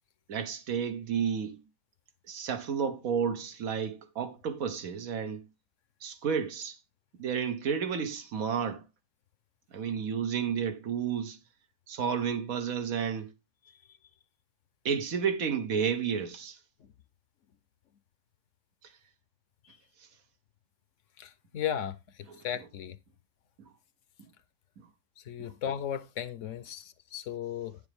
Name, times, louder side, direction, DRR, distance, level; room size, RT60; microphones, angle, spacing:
voice 1, 0.3-1.6 2.3-5.5 6.0-6.8 7.2-8.8 9.7-11.4 11.9-13.3 14.8-16.6 22.3-22.4 23.6-23.7 25.4-25.5, right 7 dB, 90° right, 1.5 m, -31 dB
voice 2, 21.2-22.0 22.4-23.0 25.3-27.8, left 9 dB, 70° left, 1.0 m, -35 dB
9.6 x 7.0 x 3.4 m
omnidirectional pair, 1.4 m